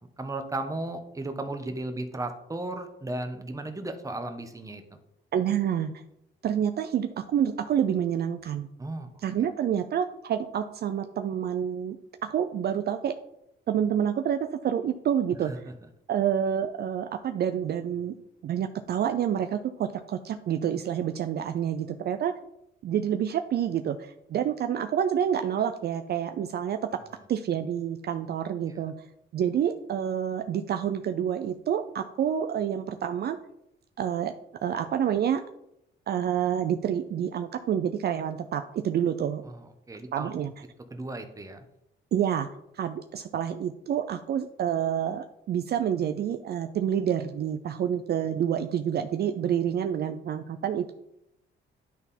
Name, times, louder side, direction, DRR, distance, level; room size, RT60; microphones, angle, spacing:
voice 1, 0.2-4.8 8.8-9.1 15.5-15.6 28.7-28.8 39.4-40.4 40.9-41.6, right 2 dB, 15° right, 7 dB, 1.0 m, -35 dB
voice 2, 5.3-6.0 6.4-8.7 9.2-13.1 13.7-15.5 16.1-18.2 18.4-22.3 22.8-26.8 27.3-29.0 29.3-33.4 34.0-34.3 34.6-35.4 36.1-39.4 40.1-40.5 42.1-42.5 42.7-50.9, right 9 dB, 55° right, 7 dB, 0.5 m, -28 dB
10.5 x 3.6 x 4.2 m, 0.80 s
cardioid pair, 90°, 20 cm